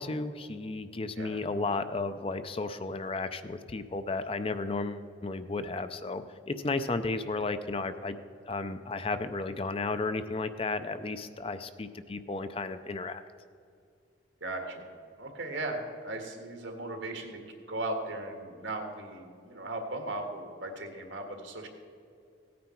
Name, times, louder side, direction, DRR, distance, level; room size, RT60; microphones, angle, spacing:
voice 1, 0.0-8.2 8.5-13.2, left 3 dB, 30° left, 11 dB, 0.5 m, -33 dB
voice 2, 14.4-14.9 15.2-17.4 17.7-21.7, right 2 dB, 80° right, 4 dB, 1.8 m, -37 dB
17.0 x 9.3 x 4.5 m, 2.4 s
head